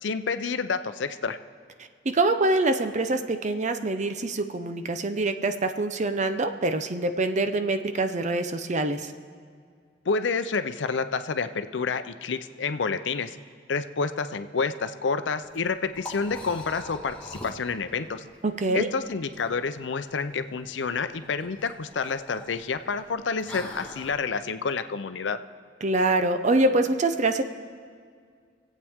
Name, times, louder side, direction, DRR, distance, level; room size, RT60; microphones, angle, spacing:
voice 1, 0.0-1.4 10.1-13.4 13.7-18.2 18.7-25.4, left 4 dB, 75° left, 10 dB, 0.6 m, -29 dB
voice 2, 2.1-9.1 18.4-18.9 25.8-27.4, right 2 dB, 40° right, 8 dB, 0.7 m, -25 dB
Liquid, 15.4-24.1, left 1 dB, 5° left, 1.5 m, -44 dB
25.0 x 8.4 x 3.6 m, 2.1 s
head